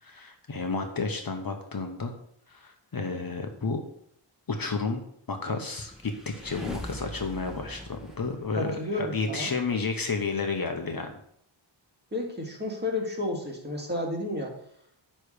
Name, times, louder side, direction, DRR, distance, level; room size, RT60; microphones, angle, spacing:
voice 1, 0.0-2.1 2.5-3.8 4.5-5.0 5.3-11.2, left 4 dB, 45° left, 5 dB, 1.0 m, -31 dB
sound 1, 5.6-9.2, equal, ahead, 1.6 m, -41 dB
voice 2, 8.5-9.5 12.1-14.5, left 1 dB, 20° right, -1 dB, 2.0 m, -31 dB
9.8 x 3.3 x 6.5 m, 0.70 s
wide cardioid pair, 95°, 48 cm